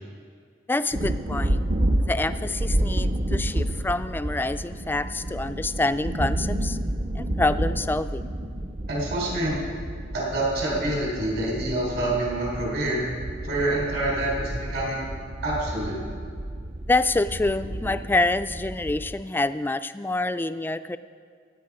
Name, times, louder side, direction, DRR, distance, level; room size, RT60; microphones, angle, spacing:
voice 1, 0.7-1.6 2.1-6.8 7.1-8.3 16.9-21.0, left 2 dB, 10° left, 12 dB, 0.3 m, -26 dB
sound 1, 0.9-19.2, right 1 dB, 35° right, 0.6 m, -30 dB
voice 2, 8.9-9.6 10.1-13.0 13.4-15.1 15.4-16.0, right 1 dB, 65° right, -3 dB, 3.9 m, -27 dB
17.0 x 9.4 x 4.8 m, 2.1 s
head